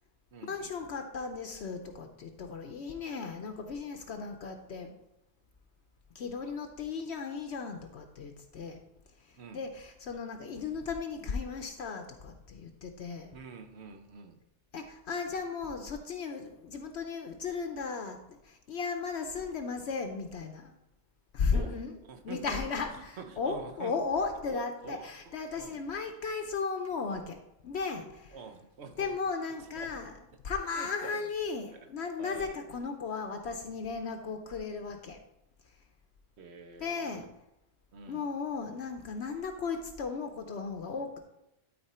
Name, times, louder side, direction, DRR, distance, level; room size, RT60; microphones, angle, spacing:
voice 1, 0.4-4.9 6.1-8.8 9.3-13.3 14.7-20.8 21.3-21.9 22.2-27.4 27.6-28.4 29.0-30.1 30.4-35.2 36.8-37.3 38.1-41.2, left 5 dB, 65° left, 6 dB, 1.0 m, -36 dB
voice 2, 13.3-14.4 21.5-21.8 22.0-22.7 23.0-24.0 24.5-25.8 28.3-29.1 29.8-30.0 30.7-31.3 31.7-31.9 32.2-32.5 36.4-37.3 37.9-38.3, right 5 dB, 65° right, 7 dB, 1.1 m, -47 dB
12.0 x 4.3 x 4.3 m, 0.86 s
omnidirectional pair, 1.2 m